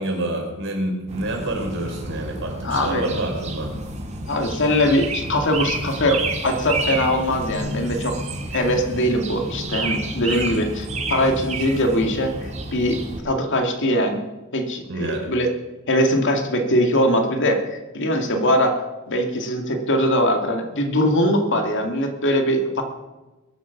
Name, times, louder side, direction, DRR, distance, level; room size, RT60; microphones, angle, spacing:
voice 1, 0.0-3.7 10.3-10.4 14.9-15.2, right 1 dB, 60° right, 2 dB, 4.0 m, -28 dB
sound 1, 1.1-13.2, right 2 dB, 30° right, 2.3 m, -30 dB
voice 2, 2.6-3.1 4.3-8.2 8.5-14.2 14.5-15.5 15.9-18.8 19.1-22.8, equal, 60° left, 4 dB, 2.1 m, -21 dB
21.5 x 8.4 x 5.9 m, 1.1 s
head